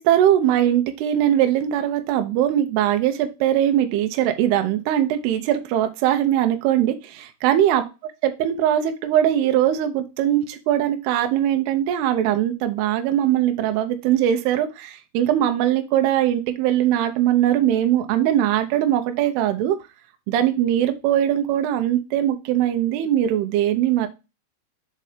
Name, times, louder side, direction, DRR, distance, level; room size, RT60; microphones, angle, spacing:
voice 1, 0.0-7.8 8.2-19.8 20.3-24.1, right 11 dB, 75° right, 7 dB, 2.6 m, -21 dB
6.7 x 4.1 x 5.0 m, 0.28 s
omnidirectional pair, 5.2 m